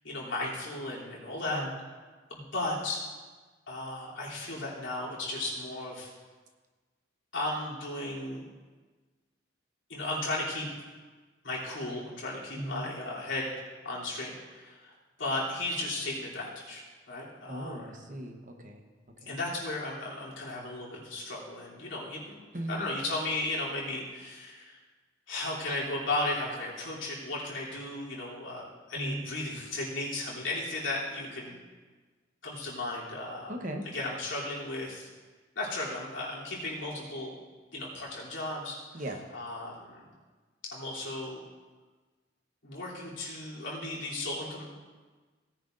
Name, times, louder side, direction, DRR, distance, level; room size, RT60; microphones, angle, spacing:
voice 1, 0.0-1.6 2.3-3.0 3.7-6.1 7.3-8.4 9.9-10.7 11.4-13.5 13.8-14.9 15.2-17.9 19.3-22.4 22.7-24.8 25.3-31.6 32.4-33.5 33.9-35.1 35.5-37.3 37.7-38.8 39.3-40.0 40.7-41.4 42.6-44.7, left 2 dB, 80° left, -6 dB, 3.2 m, -35 dB
voice 2, 12.6-12.9 17.5-18.8 19.2-19.3 22.5-22.8 28.9-29.2 33.5-33.9 38.9-39.2, right 1 dB, 40° right, 3 dB, 1.1 m, -37 dB
17.5 x 10.0 x 2.6 m, 1.4 s
head